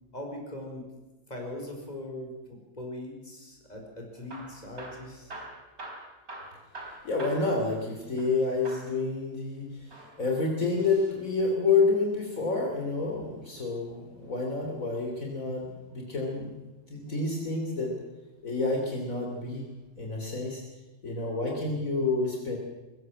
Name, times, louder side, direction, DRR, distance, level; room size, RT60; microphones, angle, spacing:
voice 1, 0.1-0.9 1.3-5.7, left 1 dB, 25° left, 1 dB, 4.9 m, -41 dB
Hammer / Drill, 4.1-8.4 8.6-9.0 9.8-11.2 13.0-14.2 15.9-16.4 17.1-17.9 18.6-18.8 19.1-19.2 19.9-20.0, right 2 dB, 60° right, 4.3 m, -46 dB
voice 2, 7.0-16.5 16.9-17.9 18.4-19.6 20.0-20.6 21.0-22.6, left 3 dB, 55° left, 0 dB, 3.5 m, -29 dB
21.5 x 16.0 x 7.6 m, 1.1 s
omnidirectional pair, 1.7 m